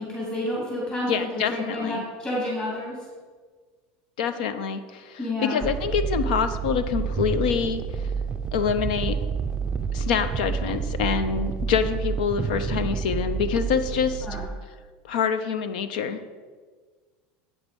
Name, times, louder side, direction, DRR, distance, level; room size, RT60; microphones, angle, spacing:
voice 1, 0.1-3.0 5.2-5.7 14.2-14.4, left 1 dB, 20° left, -5 dB, 2.8 m, -29 dB
voice 2, 1.1-2.0 4.2-7.8 8.5-9.2 9.9-14.3 15.0-16.2, left 7 dB, 90° left, 11 dB, 0.7 m, -26 dB
sound 1, 5.6-14.5, right 6 dB, 20° right, 0.4 m, -29 dB
8.5 x 6.1 x 5.2 m, 1.5 s
supercardioid pair, 135°, 4 cm